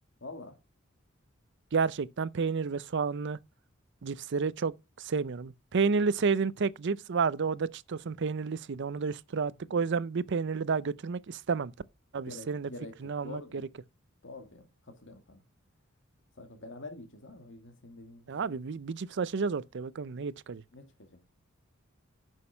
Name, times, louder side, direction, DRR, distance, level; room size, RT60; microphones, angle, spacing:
voice 1, 0.2-0.6 9.7-9.8 12.3-13.6 14.2-15.4 16.4-18.6 20.7-21.1, left 2 dB, 60° left, 2.1 m, -47 dB
voice 2, 1.7-3.4 4.0-11.7 12.1-12.7 13.0-13.4 18.3-20.6, right 5 dB, 55° right, 0.5 m, -31 dB
9.7 x 6.4 x 5.6 m
head